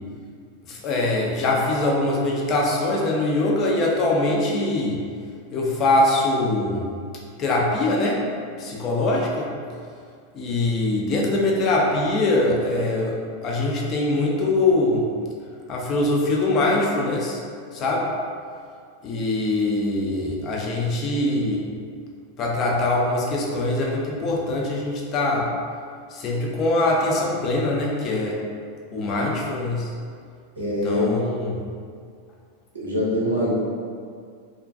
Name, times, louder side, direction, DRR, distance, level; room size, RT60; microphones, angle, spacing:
voice 1, 0.7-5.0 5.5-6.8 7.4-8.2 8.6-9.5 10.3-15.1 15.7-17.4 17.7-18.1 19.0-21.7 22.4-25.5 26.1-28.4 28.9-29.9 30.6-31.5, left 2 dB, 40° left, -2 dB, 0.4 m, -23 dB
voice 2, 30.5-31.1 32.7-33.5, left 1 dB, 85° right, -5 dB, 0.6 m, -23 dB
2.4 x 2.2 x 2.5 m, 2.2 s
figure-of-eight pair, 90°, 0 cm